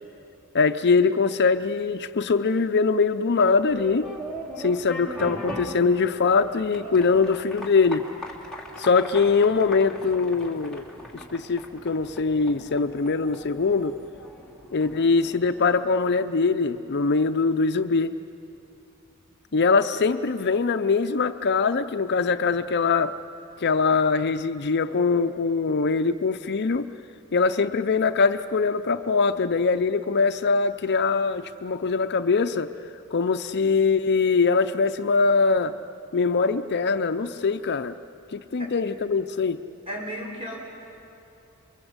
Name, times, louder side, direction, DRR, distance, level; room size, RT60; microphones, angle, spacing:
voice 1, 0.5-4.1 4.6-8.1 8.8-10.8 11.3-14.0 14.7-18.1 19.5-23.1 23.6-26.9 27.3-32.7 33.1-35.7 36.1-38.0 38.3-39.6, left 4 dB, 50° left, 9 dB, 0.6 m, -22 dB
sound 1, 3.5-16.3, equal, 5° left, 3.0 m, -40 dB
voice 2, 39.9-40.6, equal, 25° right, -2 dB, 6.0 m, -34 dB
27.5 x 23.0 x 8.0 m, 2.8 s
head